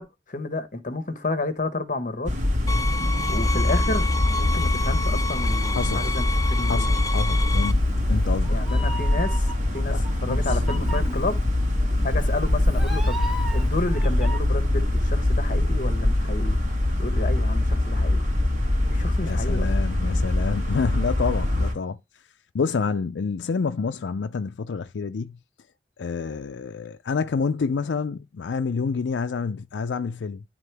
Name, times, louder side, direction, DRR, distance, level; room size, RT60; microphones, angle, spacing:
voice 1, 0.0-2.3 3.3-4.1 4.3-6.9 8.5-10.0 10.2-11.4 12.0-16.6 17.0-18.2 18.9-19.7, left 2 dB, 50° left, 1.1 m, -31 dB
sound 1, 2.3-21.8, left 1 dB, 45° right, 2.2 m, -23 dB
sound 2, 2.7-7.7, left 2 dB, 20° left, 0.6 m, -30 dB
voice 2, 5.7-6.1 6.7-7.8 8.1-8.6 9.9-10.4 19.2-22.0 22.5-25.4 26.0-30.4, left 5 dB, 90° left, 0.5 m, -28 dB
Meow, 7.7-14.4, right 1 dB, ahead, 1.4 m, -35 dB
11.0 x 3.7 x 3.4 m
head